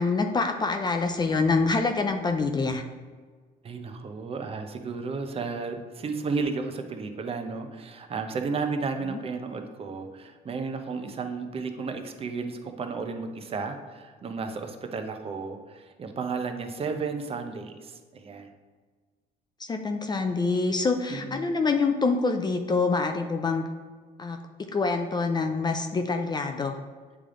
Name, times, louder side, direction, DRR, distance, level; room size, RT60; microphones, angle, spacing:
voice 1, 0.0-2.8 9.1-9.2 19.6-23.6 24.2-24.4 24.7-26.8, left 4 dB, 25° left, 5 dB, 0.4 m, -26 dB
voice 2, 3.6-18.5 21.1-21.5, right 4 dB, 35° right, 6 dB, 0.7 m, -33 dB
8.3 x 3.4 x 3.7 m, 1.5 s
cardioid pair, 110°, 17 cm